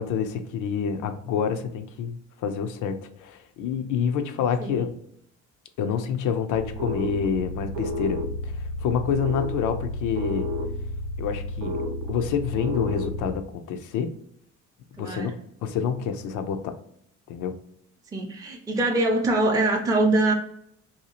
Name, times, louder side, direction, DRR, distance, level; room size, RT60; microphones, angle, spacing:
voice 1, 0.0-4.9 5.8-10.5 11.2-14.1 15.0-15.3 15.6-16.8 17.3-17.6, left 7 dB, 80° left, 8 dB, 0.5 m, -28 dB
sound 1, 6.5-13.3, left 1 dB, 90° right, 0.5 m, -31 dB
voice 2, 15.0-15.4 18.1-20.3, right 2 dB, 10° right, 1 dB, 0.5 m, -23 dB
2.7 x 2.3 x 2.8 m, 0.71 s
cardioid pair, 90°, 30 cm